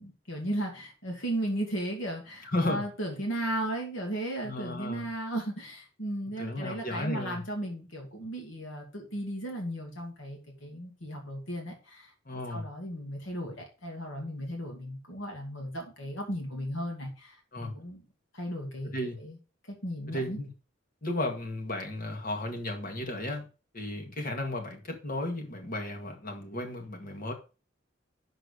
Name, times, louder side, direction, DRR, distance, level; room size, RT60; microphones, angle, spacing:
voice 1, 0.0-18.0 18.3-19.4 19.7-20.4, right 1 dB, 70° left, 1 dB, 2.5 m, -36 dB
voice 2, 2.5-2.8 4.4-5.1 6.4-7.4 12.3-12.6 17.5-17.7 18.9-19.2 20.1-20.5 21.0-23.5 23.7-27.3, left 1 dB, 45° left, 3 dB, 1.9 m, -34 dB
6.5 x 4.7 x 6.6 m, 0.33 s
head